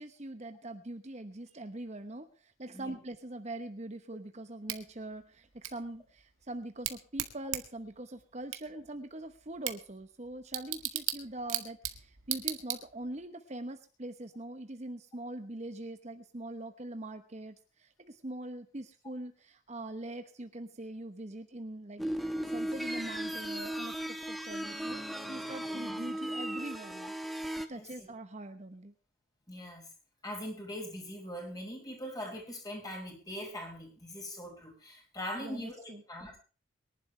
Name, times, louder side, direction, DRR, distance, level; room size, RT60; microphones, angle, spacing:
voice 1, 0.0-27.1 27.7-28.9 35.4-36.0, right 1 dB, 35° right, 8 dB, 1.0 m, -43 dB
Bicycle / Tick, 4.7-13.2, right 12 dB, 90° right, 1.9 m, -39 dB
sound 1, 22.0-27.7, right 1 dB, ahead, 1.2 m, -36 dB
voice 2, 27.7-28.1 29.5-29.9 30.2-36.4, equal, 20° left, 1 dB, 5.9 m, -42 dB
23.5 x 11.5 x 3.3 m, 0.36 s
head